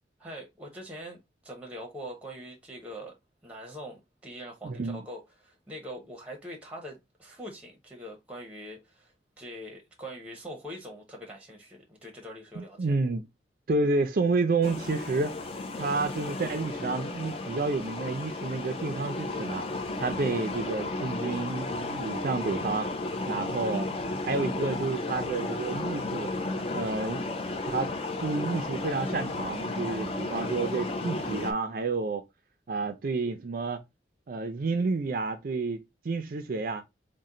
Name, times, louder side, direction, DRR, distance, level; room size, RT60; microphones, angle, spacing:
voice 1, 0.2-3.2 3.4-13.0, equal, 10° right, 0.8 m, -43 dB
voice 2, 4.6-5.0 12.6-13.3 13.7-15.3 15.8-19.6 20.0-22.9 23.3-23.9 24.2-26.3 26.7-27.2 27.7-27.9 28.2-32.2 32.7-33.8 34.3-36.8, right 3 dB, 50° right, 0.4 m, -30 dB
sound 1, 14.6-31.5, left 2 dB, 35° left, 0.6 m, -33 dB
4.2 x 2.1 x 3.7 m
head